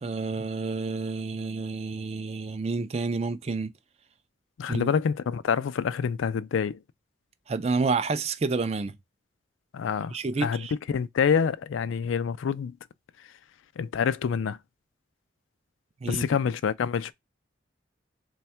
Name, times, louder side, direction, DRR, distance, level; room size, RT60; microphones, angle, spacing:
voice 1, 0.0-3.7 4.7-4.9 7.5-9.0 10.1-10.7 16.0-16.2, right 4 dB, 35° right, 0.3 m, -29 dB
voice 2, 4.6-6.8 9.7-12.8 13.8-14.6 16.1-17.1, left 6 dB, 90° left, 0.4 m, -27 dB
3.5 x 2.3 x 4.3 m
head